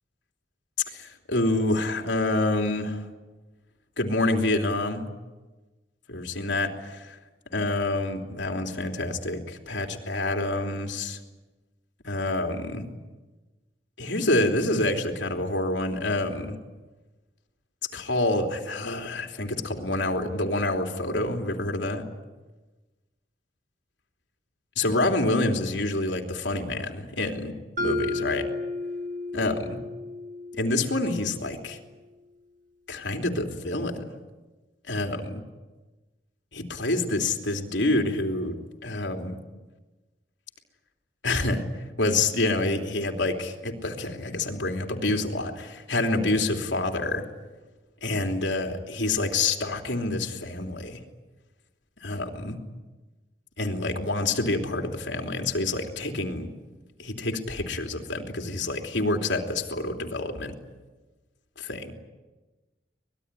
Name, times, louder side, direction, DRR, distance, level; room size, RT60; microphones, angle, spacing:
voice 1, 0.9-3.0 4.0-5.1 6.1-7.2 7.5-11.2 12.0-12.8 14.0-16.6 17.9-22.0 24.8-28.5 29.3-29.8 30.5-31.8 32.9-34.1 34.9-35.4 36.5-38.6 38.8-39.4 41.2-41.6 42.0-47.2 48.0-51.0 52.0-52.6 53.6-56.5 57.0-60.6 61.6-61.9, left 2 dB, 75° left, 3 dB, 3.2 m, -27 dB
Mallet percussion, 27.8-31.8, left 2 dB, 45° right, 2.0 m, -33 dB
25.0 x 20.5 x 9.9 m, 1.2 s
head